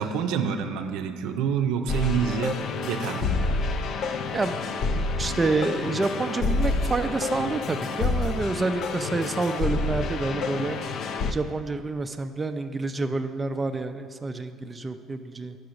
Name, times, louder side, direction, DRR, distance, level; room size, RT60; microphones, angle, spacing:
voice 1, 0.0-3.3, right 6 dB, 85° right, 7 dB, 0.5 m, -27 dB
sound 1, 1.9-11.3, left 3 dB, 55° left, 0.4 m, -28 dB
voice 2, 5.2-10.8 11.3-15.6, right 3 dB, 20° right, 7 dB, 0.3 m, -28 dB
5.9 x 4.7 x 6.4 m, 2.2 s
cardioid pair, 105°, 0 cm